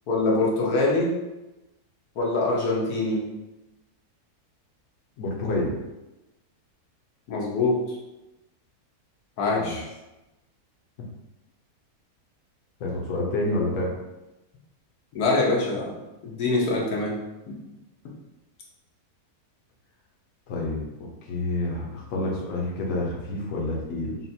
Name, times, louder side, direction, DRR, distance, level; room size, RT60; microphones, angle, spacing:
voice 1, 0.1-1.1 2.2-3.2 7.3-7.8 9.4-9.9 15.1-16.0 16.2-17.2, left 2 dB, 80° left, -3 dB, 1.4 m, -24 dB
voice 2, 5.2-5.8 9.5-9.8 12.8-13.9 20.5-24.2, left 2 dB, 60° left, -3 dB, 1.2 m, -28 dB
5.6 x 2.5 x 2.7 m, 1.0 s
omnidirectional pair, 1.6 m